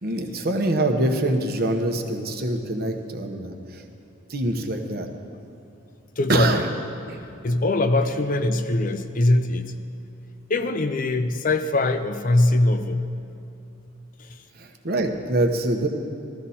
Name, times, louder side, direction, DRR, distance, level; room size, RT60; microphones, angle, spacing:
voice 1, 0.0-3.8 4.3-5.1 6.3-6.7 7.1-7.2 14.6-15.9, right 1 dB, 50° right, 5 dB, 1.0 m, -24 dB
voice 2, 6.2-6.6 7.4-9.8 10.5-13.1 14.2-14.4, left 2 dB, 40° left, 9 dB, 0.5 m, -22 dB
15.0 x 14.0 x 4.3 m, 2.9 s
head